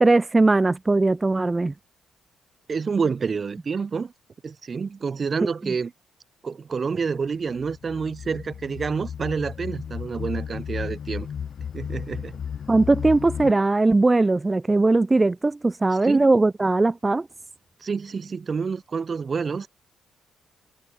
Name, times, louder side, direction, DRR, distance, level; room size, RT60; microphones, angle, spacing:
voice 1, 0.0-1.7 12.7-17.3, right 2 dB, 20° right, 0.9 m, -19 dB
voice 2, 2.7-4.1 4.4-5.9 6.4-11.3 11.7-12.4 16.0-16.3 17.8-19.7, right 5 dB, 40° right, 4.3 m, -28 dB
sound 1, 7.3-13.5, left 7 dB, 55° left, 4.6 m, -34 dB
cardioid pair, 90°, 0 cm